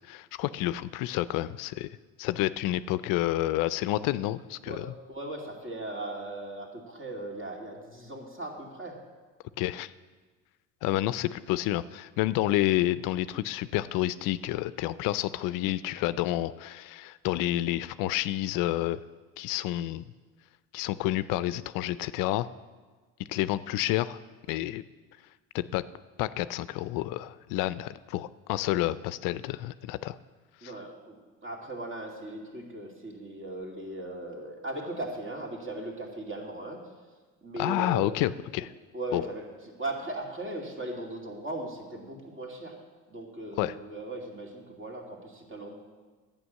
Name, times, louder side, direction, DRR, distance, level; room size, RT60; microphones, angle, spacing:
voice 1, 0.0-1.9 2.2-4.9 9.6-9.9 10.8-19.0 19.4-20.1 20.7-22.5 23.3-24.2 24.5-24.8 25.5-25.8 26.2-30.2 30.6-30.7 37.6-38.7 39.1-39.2 43.6-43.7, left 15 dB, 70° left, 16 dB, 0.5 m, -29 dB
voice 2, 4.7-9.0 10.9-11.0 30.6-31.2 31.4-36.8 37.4-38.1 38.9-42.8 43.1-45.7, right 1 dB, 35° right, 1 dB, 2.6 m, -38 dB
11.0 x 8.8 x 6.4 m, 1.4 s
supercardioid pair, 110°, 34 cm